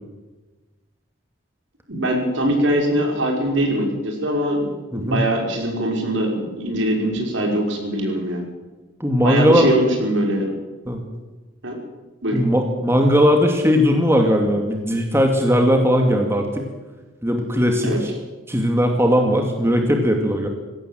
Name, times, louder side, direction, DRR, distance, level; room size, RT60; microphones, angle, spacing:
voice 1, 1.9-4.7 4.9-8.4 9.2-10.5 11.6-11.8 12.2-12.4 17.8-18.0, right 1 dB, 70° right, 1 dB, 6.0 m, -22 dB
voice 2, 9.0-9.7 10.9-11.0 12.3-16.7 17.2-18.1 18.5-20.5, equal, 10° right, 3 dB, 2.2 m, -18 dB
21.0 x 17.0 x 7.6 m, 1.2 s
head